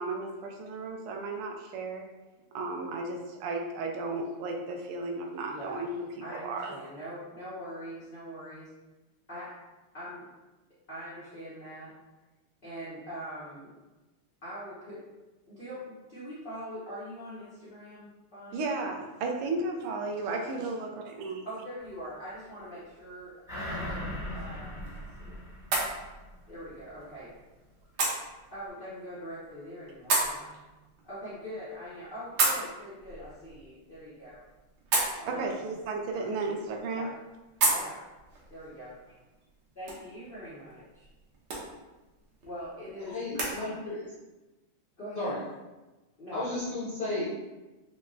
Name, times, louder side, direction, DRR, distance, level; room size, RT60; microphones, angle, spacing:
voice 1, 0.0-2.1 2.5-5.9 6.3-6.8 18.5-21.4 35.3-37.1, right 3 dB, 85° right, 2 dB, 1.5 m, -34 dB
voice 2, 5.5-5.9 6.2-8.7 9.3-9.6 9.9-10.3 10.9-11.9 12.6-13.7 14.4-15.0 15.5-18.6 20.3-20.5 21.4-25.4 26.5-27.4 28.5-30.7 31.0-34.4 35.2-35.6 36.1-36.3 37.0-37.2 37.6-38.0 38.5-39.0 39.7-41.1 42.4-43.6 45.0-45.4 46.2-46.4, equal, 80° left, -10 dB, 0.4 m, -43 dB
sound 1, 23.5-26.4 26.8-26.9, left 1 dB, 5° right, 0.4 m, -38 dB
sound 2, 24.0-43.5, right 2 dB, 65° right, 1.4 m, -35 dB
voice 3, 43.0-44.1 45.2-45.4 46.3-47.3, left 2 dB, 60° left, -10 dB, 0.8 m, -33 dB
5.5 x 2.0 x 2.5 m, 1.1 s
omnidirectional pair, 2.4 m